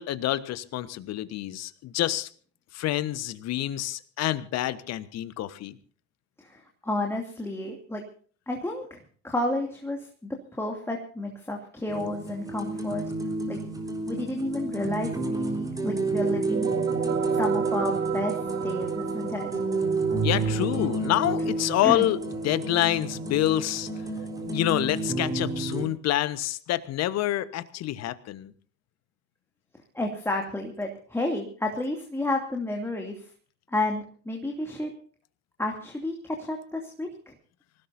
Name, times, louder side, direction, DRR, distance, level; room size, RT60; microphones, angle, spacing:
voice 1, 0.0-2.3 2.7-5.8 20.2-22.2 22.4-23.9 24.4-28.5, left 14 dB, 45° left, 15 dB, 1.3 m, -27 dB
voice 2, 6.4-8.0 8.5-13.0 13.5-13.6 14.1-16.7 17.3-18.3 18.6-19.6 21.8-22.1 29.9-33.3 33.7-34.9 35.6-37.3, left 1 dB, 5° left, 1 dB, 2.6 m, -31 dB
sound 1, 11.9-25.9, right 3 dB, 10° right, 3.7 m, -30 dB
sound 2, 16.2-25.6, right 8 dB, 35° right, 3.0 m, -37 dB
26.0 x 17.0 x 2.7 m, 0.44 s
figure-of-eight pair, 70°, 37 cm